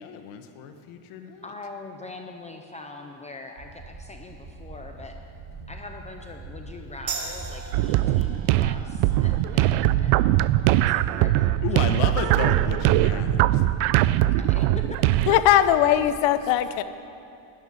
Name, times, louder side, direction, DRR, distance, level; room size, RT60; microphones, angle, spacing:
voice 1, 0.0-1.5 11.6-13.6, left 8 dB, 90° left, 7 dB, 1.5 m, -32 dB
voice 2, 1.4-5.1 5.7-10.2 10.8-12.2 14.2-15.4, left 3 dB, 15° left, 3 dB, 0.5 m, -42 dB
sound 1, 3.6-16.1, right 3 dB, 70° right, 3.0 m, -40 dB
sound 2, 7.1-14.2, right 5 dB, 35° right, 1.4 m, -42 dB
sound 3, 7.7-15.4, right 15 dB, 90° right, 0.6 m, -21 dB
voice 3, 15.3-16.8, left 11 dB, 65° left, 11 dB, 1.0 m, -19 dB
12.0 x 12.0 x 9.7 m, 2.6 s
cardioid pair, 175°, 49 cm